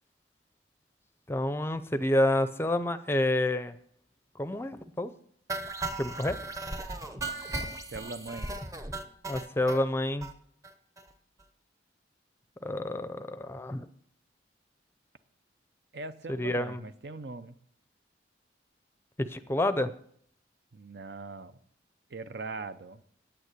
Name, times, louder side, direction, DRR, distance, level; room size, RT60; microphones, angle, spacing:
voice 1, 1.3-3.8 4.4-5.1 6.0-6.4 9.3-10.3 12.6-13.9 16.3-16.8 19.2-19.9, left 1 dB, 15° left, 12 dB, 0.5 m, -28 dB
sound 1, 5.5-9.8 10.2-10.3 10.6-10.7 11.0-11.1 11.4-11.5, right 2 dB, 20° right, 0.9 m, -36 dB
voice 2, 7.9-8.5 15.9-17.5 20.7-21.6 22.1-23.0, right 3 dB, 65° right, 12 dB, 0.7 m, -41 dB
9.4 x 8.8 x 8.2 m, 0.66 s
head